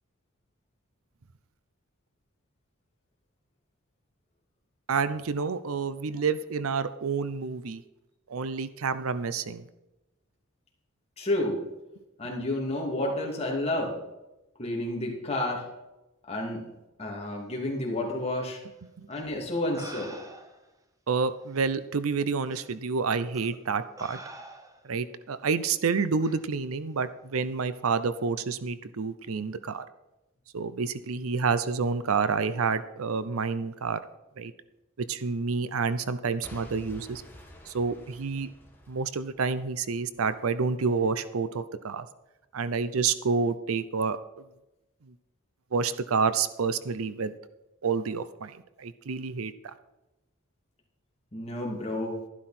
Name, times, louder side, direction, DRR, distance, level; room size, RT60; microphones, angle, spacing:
voice 1, 4.9-7.8 8.3-9.6 19.0-19.1 21.1-23.8 24.1-24.2 24.9-29.8 30.5-34.0 34.4-34.5 35.1-37.2 37.7-38.5 38.9-42.0 42.5-44.2 45.7-47.3 47.8-48.5 48.8-49.5, right 5 dB, 80° right, 14 dB, 0.6 m, -28 dB
voice 2, 11.2-11.6 12.2-13.9 14.6-15.6 16.3-16.6 17.0-18.6 19.1-20.2 51.3-52.2, left 1 dB, 30° left, -1 dB, 2.8 m, -30 dB
sound 1, 19.1-19.2 19.7-20.7 21.6-21.7 22.5-22.7 23.3-23.6 24.0-24.9 26.2-26.4, right 2 dB, 15° right, 1.0 m, -45 dB
Boom / Shatter / Crushing, 36.4-40.4 41.0-41.1, equal, 10° left, 1.8 m, -50 dB
12.0 x 11.5 x 4.3 m, 0.99 s
head